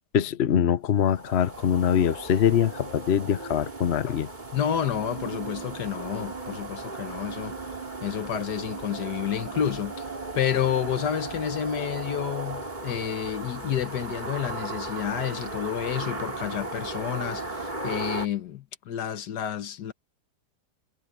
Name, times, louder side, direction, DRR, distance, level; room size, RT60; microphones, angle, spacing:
voice 1, 0.1-4.3, left 9 dB, 50° left, 0.9 m, -23 dB
sound 1, 0.9-18.3, right 2 dB, 25° right, 3.0 m, -36 dB
voice 2, 4.5-7.6 8.0-10.0 10.4-19.9, left 9 dB, 75° left, 1.6 m, -30 dB
omnidirectional pair, 1.8 m